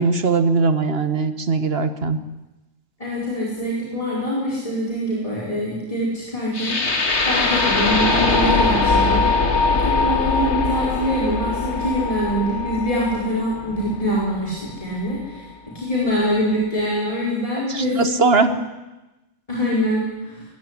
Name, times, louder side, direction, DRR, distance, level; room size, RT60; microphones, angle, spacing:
voice 1, 0.0-2.2 14.9-15.0 17.7-18.5, right 4 dB, 50° right, 11 dB, 1.6 m, -20 dB
voice 2, 3.0-7.0 7.2-9.3 9.7-15.5 15.7-18.5 19.5-20.4, equal, 25° left, -5 dB, 5.0 m, -24 dB
sound 1, 6.5-14.6, left 3 dB, 60° left, 2.3 m, -21 dB
21.5 x 15.5 x 9.9 m, 1.0 s
omnidirectional pair, 1.3 m